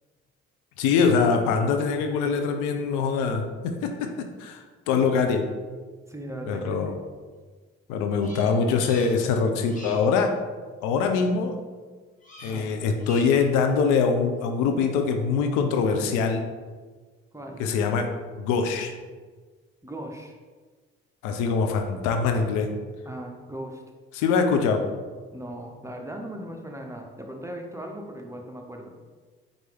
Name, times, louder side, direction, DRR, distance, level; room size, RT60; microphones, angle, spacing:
voice 1, 0.8-5.4 6.4-6.9 7.9-10.3 10.8-11.5 12.4-16.4 17.6-18.9 21.2-22.7 24.1-24.8, left 5 dB, 80° left, 5 dB, 0.5 m, -23 dB
voice 2, 6.1-7.0 12.4-12.7 17.3-17.6 19.8-20.4 23.1-23.8 25.3-28.9, right 1 dB, 10° right, 1 dB, 0.7 m, -38 dB
Bird vocalization bird call bird song, 8.2-9.4 9.6-10.2 12.2-12.7 13.0-13.5, left 1 dB, 25° left, 1.5 m, -44 dB
4.6 x 2.6 x 3.3 m, 1.4 s
hypercardioid pair, 45°, 30 cm